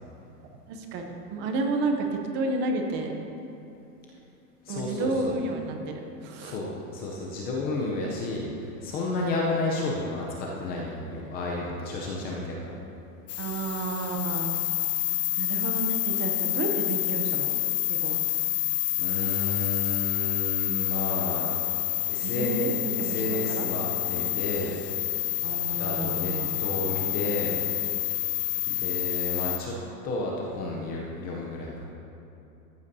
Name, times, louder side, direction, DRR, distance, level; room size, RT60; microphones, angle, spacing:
voice 1, 0.7-3.1 4.7-6.6 9.1-9.3 13.4-14.5 15.4-17.6 17.9-18.2 22.2-22.7 23.0-23.7 25.4-26.6, right 3 dB, 25° right, 3 dB, 0.7 m, -31 dB
voice 2, 4.6-5.4 6.4-12.7 19.0-21.5 22.1-24.8 25.7-26.3 26.6-27.6 28.7-29.8 30.0-31.8, left 2 dB, 20° left, -2 dB, 0.6 m, -31 dB
sound 1, 13.3-29.6, left 16 dB, 85° left, 0.7 m, -28 dB
14.0 x 8.0 x 2.7 m, 2.9 s
supercardioid pair, 150°, 46 cm